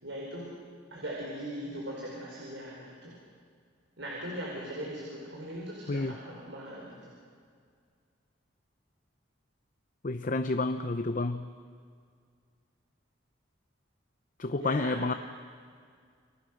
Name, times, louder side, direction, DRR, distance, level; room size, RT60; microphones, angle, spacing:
voice 1, 0.0-0.5 0.9-3.2 4.0-7.1 14.6-15.2, right 1 dB, 70° right, -4 dB, 5.4 m, -40 dB
voice 2, 10.0-11.5 14.4-15.1, left 2 dB, 45° left, 9 dB, 0.7 m, -30 dB
29.5 x 23.5 x 6.5 m, 2.1 s
head